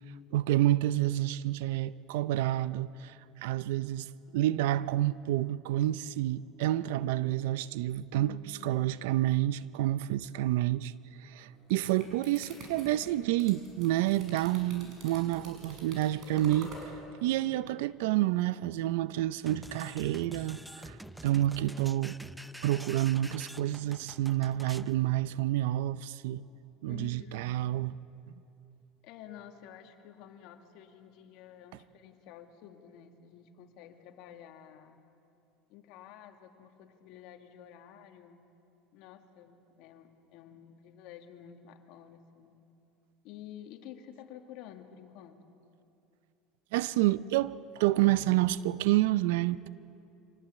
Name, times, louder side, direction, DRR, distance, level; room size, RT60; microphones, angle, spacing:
voice 1, 0.3-3.1 3.4-8.4 8.6-10.9 11.2-16.7 17.2-21.0 21.2-22.2 22.6-26.4 26.8-27.9 46.7-49.7, right 14 dB, 85° right, 0.6 m, -29 dB
voice 2, 8.1-8.9 26.9-27.7 29.0-35.0 35.7-38.4 38.9-42.6 43.2-45.6, left 10 dB, 65° left, 2.0 m, -50 dB
sound 1, 11.5-16.9, right 2 dB, 50° right, 6.6 m, -48 dB
sound 2, 19.5-24.9, right 1 dB, 5° right, 0.6 m, -47 dB
24.5 x 19.0 x 8.4 m
supercardioid pair, 120°, 0 cm